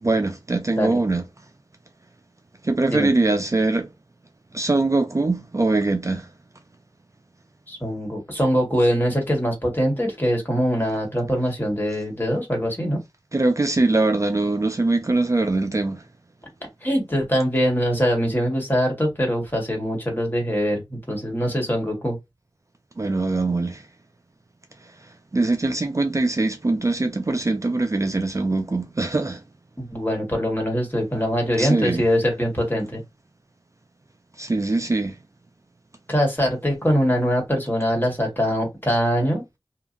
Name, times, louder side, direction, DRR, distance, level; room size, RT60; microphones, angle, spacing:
voice 1, 0.0-1.2 2.6-3.9 4.5-6.3 13.3-16.0 23.0-23.8 25.3-29.4 31.6-32.0 34.4-35.2, right 2 dB, 35° right, 0.4 m, -22 dB
voice 2, 7.7-13.0 16.8-22.2 29.8-33.0 36.1-39.4, equal, 25° left, 1.5 m, -23 dB
2.7 x 2.4 x 2.5 m
wide cardioid pair, 55°, 9 cm